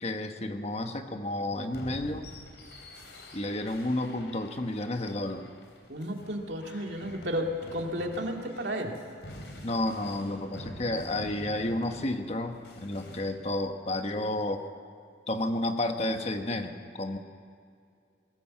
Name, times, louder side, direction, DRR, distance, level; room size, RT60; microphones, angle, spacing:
voice 1, 0.0-2.3 3.3-5.5 9.6-14.6 15.3-17.2, left 1 dB, 35° left, 6 dB, 1.3 m, -31 dB
sound 1, 1.7-13.2, left 1 dB, 75° left, 3.8 m, -47 dB
voice 2, 5.9-9.0, equal, 75° right, 2 dB, 2.4 m, -33 dB
21.5 x 17.5 x 7.7 m, 2.3 s
head